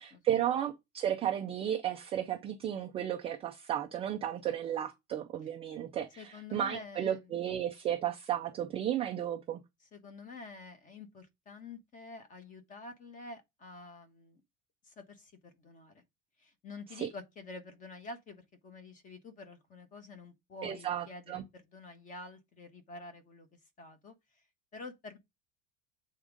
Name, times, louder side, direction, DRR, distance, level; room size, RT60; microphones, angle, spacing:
voice 1, 0.0-9.6 17.0-17.1 20.6-21.4, right 10 dB, 15° right, 0.3 m, -34 dB
voice 2, 6.2-7.3 9.9-14.4 14.8-16.0 16.4-24.1 24.7-25.2, left 3 dB, 20° left, 1.1 m, -48 dB
7.9 x 3.6 x 5.0 m
cardioid pair, 180°, 36 cm